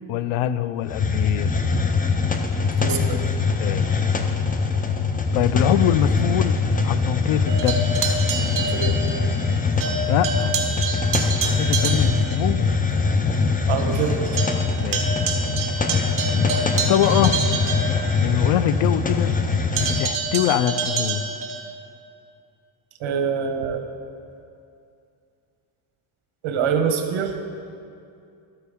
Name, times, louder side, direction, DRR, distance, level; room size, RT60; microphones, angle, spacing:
voice 1, 0.1-1.5 3.6-4.0 5.3-6.6 6.8-8.0 10.1-10.5 11.4-12.7 14.8-15.2 16.9-17.3 18.2-19.3 20.0-21.3, left 11 dB, 85° left, 14 dB, 0.6 m, -23 dB
Hiss, 0.9-20.1, left 4 dB, 20° left, 0.5 m, -23 dB
voice 2, 2.6-3.2 8.7-9.0 13.7-14.2 23.0-23.8 26.4-27.3, right 6 dB, 70° right, 5 dB, 1.2 m, -24 dB
sound 1, 7.5-9.5 9.8-12.4 12.9-13.0 13.4-13.5 13.8-18.6 19.8-21.7, right 4 dB, 40° right, 1.3 m, -27 dB
12.5 x 9.2 x 3.5 m, 2.5 s
cardioid pair, 140°, 49 cm